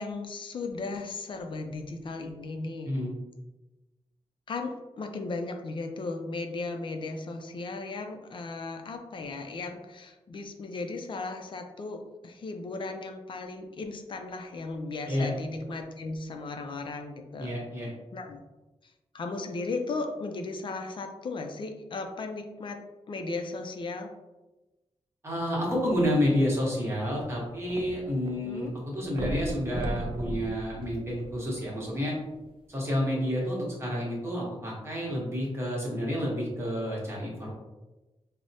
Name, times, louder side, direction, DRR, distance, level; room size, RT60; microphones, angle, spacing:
voice 1, 0.0-3.0 4.5-17.5 18.1-18.4 18.8-24.1 28.3-28.7, left 3 dB, 50° left, 5 dB, 0.4 m, -36 dB
voice 2, 17.4-17.9 25.2-32.2 32.7-37.5, equal, 25° right, -4 dB, 1.0 m, -29 dB
sound 1, 26.8-28.3 28.6-28.7 29.1-31.7 32.4-32.5, right 1 dB, 50° right, 0.4 m, -36 dB
4.7 x 2.0 x 2.7 m, 1.1 s
wide cardioid pair, 155°, 11 cm